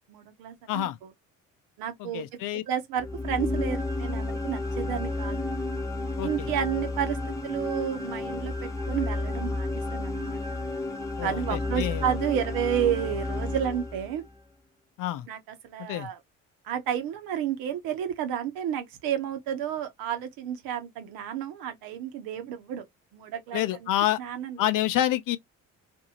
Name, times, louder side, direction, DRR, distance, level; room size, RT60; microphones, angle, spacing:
voice 1, 0.1-1.1 1.8-2.2 2.7-5.4 6.2-10.4 11.2-14.2 15.3-16.2 16.6-22.9 23.1-23.9 24.2-24.8, right 9 dB, 80° right, 1.0 m, -31 dB
voice 2, 2.0-2.6 6.2-6.5 11.2-12.1 15.0-15.3 15.9-16.1 23.5-24.2 24.6-25.4, left 13 dB, 65° left, 0.6 m, -28 dB
sound 1, 3.0-14.3, left 2 dB, 10° left, 0.8 m, -31 dB
2.6 x 2.6 x 2.8 m
supercardioid pair, 85°, 35 cm